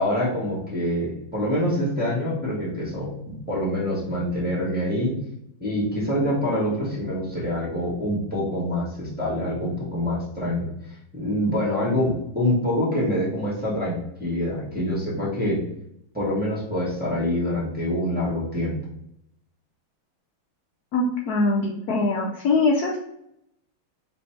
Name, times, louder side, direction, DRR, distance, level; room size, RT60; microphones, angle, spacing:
voice 1, 0.0-5.2 5.6-10.7 11.1-15.6 16.1-18.8, left 1 dB, 5° right, -8 dB, 1.1 m, -25 dB
voice 2, 20.9-23.0, left 3 dB, 75° left, 0 dB, 0.8 m, -22 dB
4.1 x 2.6 x 4.4 m, 0.79 s
omnidirectional pair, 2.3 m